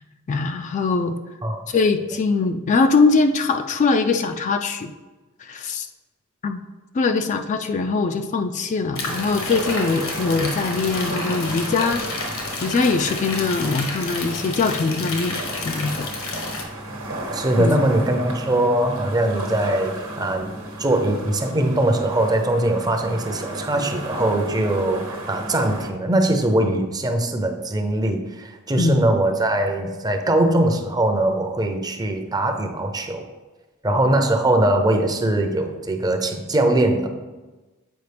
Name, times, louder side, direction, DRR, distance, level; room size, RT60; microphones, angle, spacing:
voice 1, 0.3-1.2 1.7-4.9 5.4-5.9 6.4-6.6 6.9-12.0 12.6-16.1 17.6-17.8 28.8-29.0, left 4 dB, 35° left, 6 dB, 0.3 m, -22 dB
sound 1, 9.0-16.6, left 2 dB, 75° left, 1.2 m, -30 dB
sound 2, 9.1-25.9, right 1 dB, 70° right, 1.1 m, -34 dB
voice 2, 17.3-20.5 20.8-33.3 33.8-37.1, right 1 dB, 20° right, 5 dB, 0.6 m, -21 dB
8.0 x 4.8 x 3.3 m, 1.2 s
head